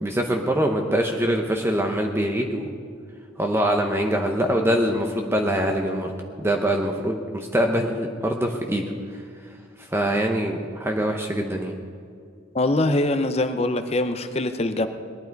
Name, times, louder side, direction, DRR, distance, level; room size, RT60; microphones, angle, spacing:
voice 1, 0.0-2.7 3.4-6.1 6.4-8.9 9.1-9.2 9.8-11.7, equal, 10° right, 2 dB, 0.8 m, -24 dB
voice 2, 12.5-14.9, left 2 dB, 30° left, 9 dB, 0.7 m, -23 dB
19.5 x 12.0 x 4.6 m, 2.2 s
head